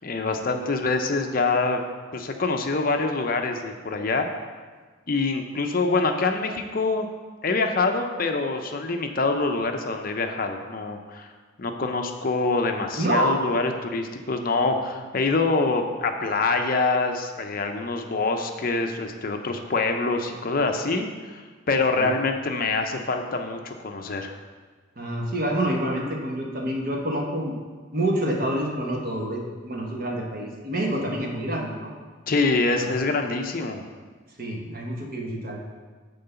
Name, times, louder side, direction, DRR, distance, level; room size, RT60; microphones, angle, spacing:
voice 1, 0.0-1.8 2.1-4.3 5.1-7.1 7.4-11.3 11.6-21.4 21.7-24.4 32.3-33.8, left 3 dB, 45° left, 5 dB, 0.6 m, -25 dB
voice 2, 13.0-13.4 21.9-22.1 25.0-27.5 27.9-31.9 32.8-32.9 34.4-35.7, right 1 dB, 45° right, 0 dB, 1.2 m, -27 dB
9.4 x 3.8 x 6.8 m, 1.5 s
head